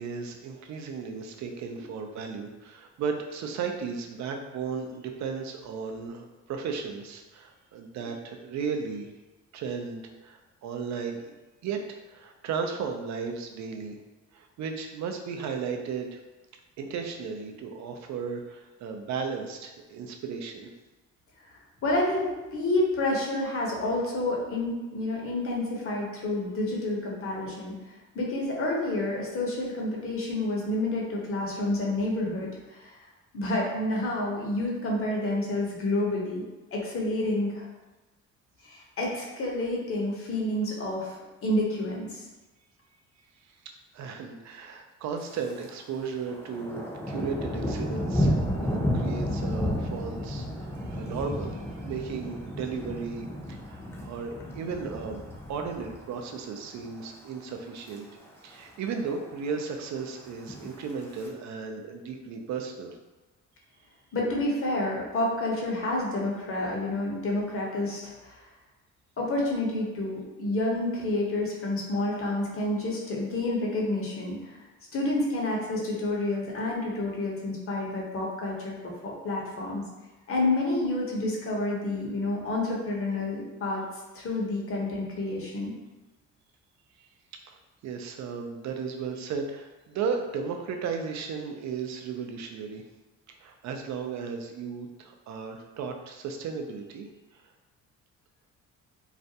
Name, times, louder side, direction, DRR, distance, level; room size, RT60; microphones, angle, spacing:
voice 1, 0.0-9.1 9.5-11.3 11.6-14.0 14.3-16.2 16.8-20.7 43.9-55.2 55.5-58.1 58.4-63.0 87.5-87.6 87.8-92.8 93.4-97.1 97.3-97.4, right 5 dB, 65° right, 4 dB, 0.4 m, -35 dB
voice 2, 21.8-27.7 28.1-32.9 33.3-36.4 36.7-37.7 38.6-42.3 64.1-68.4 69.2-74.6 74.9-79.8 80.3-83.8 84.1-85.7, left 2 dB, 45° left, -3 dB, 0.8 m, -29 dB
Thunder, 45.2-45.7 46.0-56.4 56.7-57.1 57.5-58.0 58.2-58.3 58.5-58.6 59.0-59.6 60.3-61.3, equal, 10° left, 0.5 m, -32 dB
2.4 x 2.1 x 2.7 m, 1.1 s
cardioid pair, 90°, 30 cm